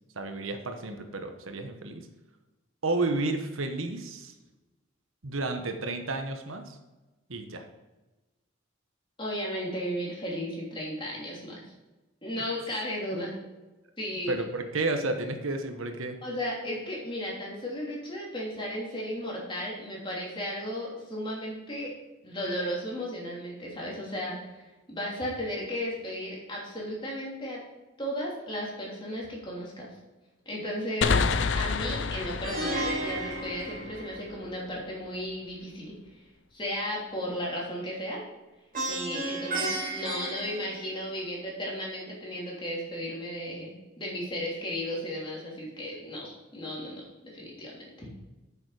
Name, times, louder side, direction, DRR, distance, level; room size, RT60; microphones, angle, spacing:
voice 1, 0.2-2.1 2.8-4.3 5.2-6.8 7.3-7.6 13.1-13.3 14.3-16.2, right 2 dB, 80° right, 6 dB, 1.2 m, -31 dB
voice 2, 9.2-11.6 12.2-13.4 14.0-14.3 16.2-21.9 22.2-27.6 28.0-29.9 30.4-31.2 31.6-35.9 36.5-38.2 38.9-48.1, equal, 25° left, -4 dB, 3.1 m, -35 dB
sound 1, 31.0-34.5, left 5 dB, 60° left, 0.5 m, -29 dB
Plucked string instrument, 32.4-34.6 38.7-41.3, right 1 dB, 40° right, 2.7 m, -33 dB
8.7 x 7.1 x 5.0 m, 1.1 s
head